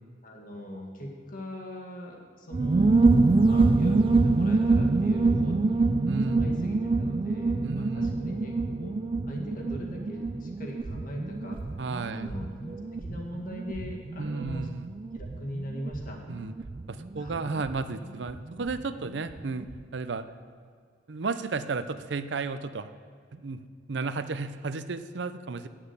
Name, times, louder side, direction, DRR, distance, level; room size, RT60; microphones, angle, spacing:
voice 1, 0.2-3.1 3.4-5.8 6.2-9.0 9.2-11.6 12.1-14.7 15.1-16.2 17.2-17.5, equal, 50° left, 0 dB, 1.8 m, -40 dB
sound 1, 2.5-18.8 19.1-19.2 19.4-19.8, right 3 dB, 30° right, 0.3 m, -26 dB
voice 2, 6.1-6.4 7.6-8.1 11.8-12.3 14.2-14.9 16.3-16.5 16.9-19.7 19.9-20.3 21.1-22.9 23.3-23.6 23.9-25.7, right 4 dB, 75° right, 11 dB, 0.6 m, -33 dB
8.8 x 7.5 x 8.1 m, 2.1 s
head